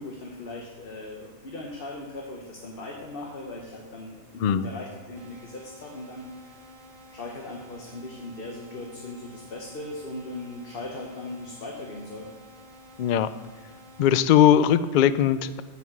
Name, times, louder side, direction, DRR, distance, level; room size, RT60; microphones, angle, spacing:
voice 1, 0.0-6.6 7.1-12.3, left 2 dB, 45° left, 0 dB, 1.4 m, -39 dB
voice 2, 4.4-4.7 13.0-13.3 14.0-15.6, left 10 dB, 90° left, 14 dB, 0.4 m, -20 dB
sound 1, 5.1-14.1, equal, 65° right, 1.4 m, -51 dB
15.0 x 5.9 x 6.2 m, 1.4 s
omnidirectional pair, 1.4 m